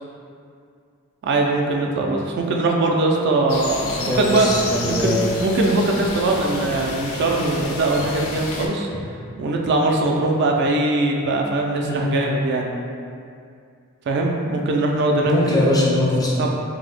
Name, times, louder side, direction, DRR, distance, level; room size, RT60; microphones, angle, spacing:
voice 1, 1.2-4.5 4.8-8.9 9.4-12.7 14.1-15.3 16.4-16.5, right 2 dB, 55° right, 0 dB, 0.3 m, -21 dB
sound 1, 3.5-8.7, left 3 dB, 90° left, 0.4 m, -31 dB
voice 2, 3.9-5.3 11.8-12.1 15.3-16.5, left 1 dB, 20° left, -5 dB, 0.4 m, -21 dB
2.7 x 2.0 x 3.9 m, 2.3 s
head